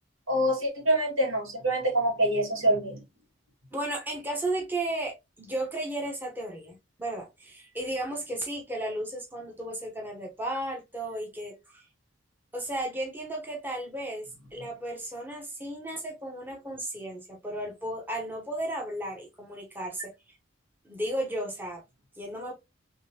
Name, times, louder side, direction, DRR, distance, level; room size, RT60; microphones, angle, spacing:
voice 1, 0.3-3.0, right 1 dB, 85° right, 2.1 m, -25 dB
voice 2, 3.7-11.8 12.5-20.1 20.8-21.8 22.2-22.5, right 1 dB, 10° right, 0.8 m, -34 dB
3.7 x 3.1 x 2.8 m
head